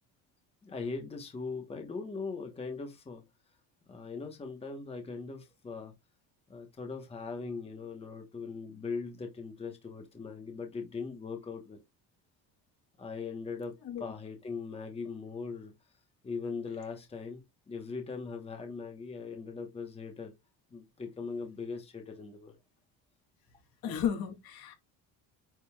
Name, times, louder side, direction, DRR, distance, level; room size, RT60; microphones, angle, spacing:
voice 1, 0.6-3.2 3.9-5.9 6.5-11.8 13.0-15.7 16.2-20.3 20.7-22.6, left 4 dB, 15° left, 1.2 m, -40 dB
voice 2, 23.8-24.7, left 8 dB, 65° left, 2.5 m, -33 dB
9.3 x 5.3 x 2.4 m
cardioid pair, 165°, 39 cm